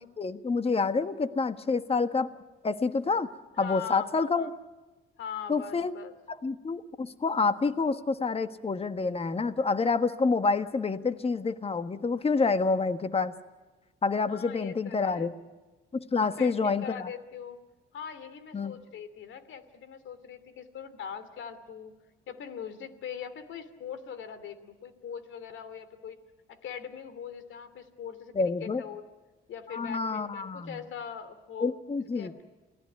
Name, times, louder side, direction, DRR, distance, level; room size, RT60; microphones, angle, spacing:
voice 1, 0.2-2.3 2.6-3.3 3.6-4.5 5.5-5.9 6.3-13.3 14.0-15.3 15.9-17.1 18.5-18.8 28.3-28.8 29.7-30.8 31.6-32.3, left 4 dB, 30° left, 10 dB, 1.5 m, -28 dB
voice 2, 3.6-4.5 5.2-6.1 14.3-15.3 16.2-17.6 17.9-21.9 22.3-26.2 26.5-29.0 29.5-31.8 32.1-32.4, left 7 dB, 75° left, 12 dB, 2.8 m, -41 dB
29.0 x 18.5 x 9.4 m, 1.2 s
cardioid pair, 90°, 20 cm